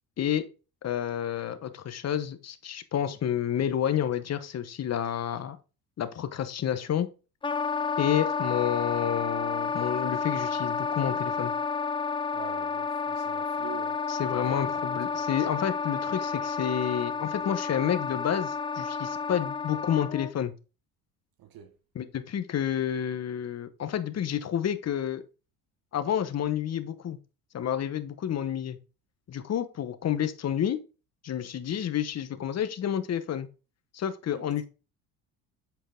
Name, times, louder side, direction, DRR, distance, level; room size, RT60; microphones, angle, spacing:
voice 1, 0.8-5.6 6.0-7.1 8.0-11.5 14.1-20.5 21.9-25.2 25.9-27.2 27.5-28.8 29.3-30.8 31.2-33.5 33.9-34.7, left 9 dB, 40° left, 1.0 m, -29 dB
Wind instrument woodwind instrument, 7.4-20.3, left 5 dB, 15° left, 0.4 m, -31 dB
voice 2, 12.3-14.0 14.5-14.6 15.1-15.2 21.4-21.7 34.3-34.7, right 9 dB, 60° right, 1.1 m, -45 dB
7.9 x 4.6 x 3.7 m
supercardioid pair, 85°, 40 cm